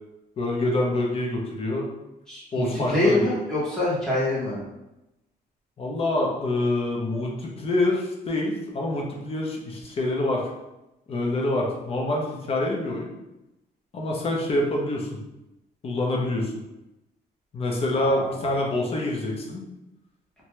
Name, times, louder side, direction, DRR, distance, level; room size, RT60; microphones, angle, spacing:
voice 1, 0.4-1.9 2.5-3.3 5.8-10.4 11.1-13.1 13.9-15.2 15.8-16.5 17.5-19.7, left 1 dB, 35° left, -1 dB, 0.6 m, -26 dB
voice 2, 2.3-4.6 17.9-18.4, left 1 dB, 5° left, -8 dB, 1.1 m, -25 dB
2.6 x 2.2 x 3.0 m, 0.94 s
cardioid pair, 140°, 16 cm